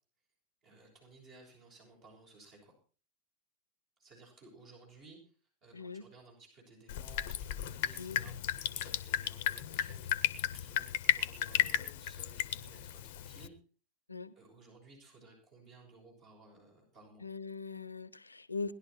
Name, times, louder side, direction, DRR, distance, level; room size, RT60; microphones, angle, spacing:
voice 1, 0.6-2.7 4.0-5.2 5.6-13.5 14.3-17.3, right 3 dB, 35° right, 6.5 m, -58 dB
voice 2, 5.7-6.1 8.0-8.2 14.1-14.3 17.2-18.7, left 4 dB, 80° left, 0.9 m, -41 dB
Drip, 6.9-13.5, left 11 dB, 50° left, 1.0 m, -34 dB
19.5 x 11.5 x 4.3 m
figure-of-eight pair, 90°, 0 cm